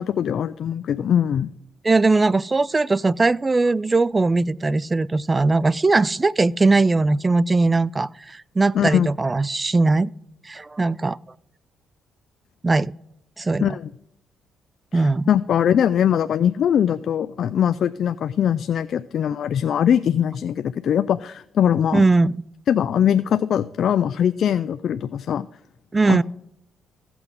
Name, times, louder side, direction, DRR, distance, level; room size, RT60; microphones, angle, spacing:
voice 1, 0.0-1.5 8.7-9.1 13.6-13.9 14.9-22.0 22.7-25.5 26.1-26.2, left 9 dB, 65° left, 0.3 m, -21 dB
voice 2, 1.8-10.1 10.5-11.2 12.6-12.9 13.4-13.6 14.9-15.3 21.9-22.4 25.9-26.2, right 3 dB, 25° right, 0.3 m, -19 dB
16.0 x 6.0 x 3.7 m
cardioid pair, 90°, 0 cm